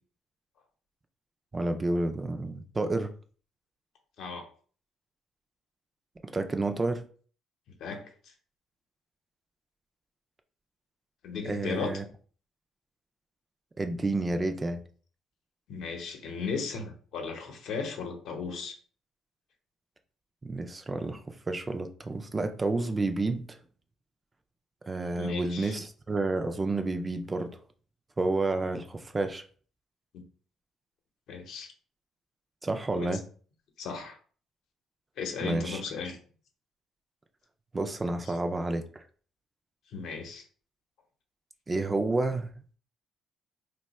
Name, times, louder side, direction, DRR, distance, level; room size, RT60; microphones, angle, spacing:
voice 1, 1.5-3.1 6.2-7.0 11.5-12.0 13.8-14.8 20.4-23.6 24.9-27.5 28.2-29.4 32.6-33.2 35.4-35.8 37.7-39.0 41.7-42.5, right 2 dB, 20° right, 0.3 m, -30 dB
voice 2, 4.2-4.5 7.8-8.3 11.2-11.9 15.7-18.8 25.2-25.8 30.1-30.2 31.3-31.7 32.9-33.1 33.8-34.2 35.2-36.2 38.3-38.4 39.9-40.4, left 5 dB, 70° left, 0.8 m, -36 dB
2.7 x 2.2 x 4.1 m
cardioid pair, 130°, 0 cm